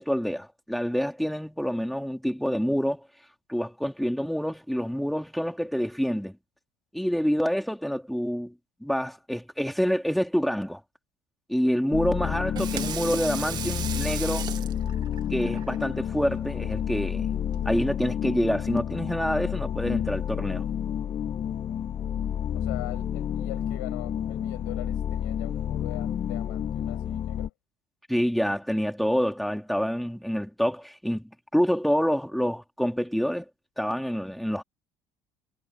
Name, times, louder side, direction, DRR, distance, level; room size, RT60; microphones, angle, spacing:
voice 1, 0.0-3.0 3.5-6.4 6.9-8.5 8.8-10.8 11.5-14.5 15.3-17.3 17.6-20.7 28.1-33.4 33.8-34.6, equal, ahead, 4.0 m, -27 dB
sound 1, 11.9-27.5, left 9 dB, 45° left, 1.4 m, -30 dB
Water tap faucet / Sink (filling or washing), 12.3-17.8, right 9 dB, 50° right, 2.6 m, -38 dB
voice 2, 22.5-27.5, left 23 dB, 80° left, 6.6 m, -41 dB
hypercardioid pair, 70°, 10 cm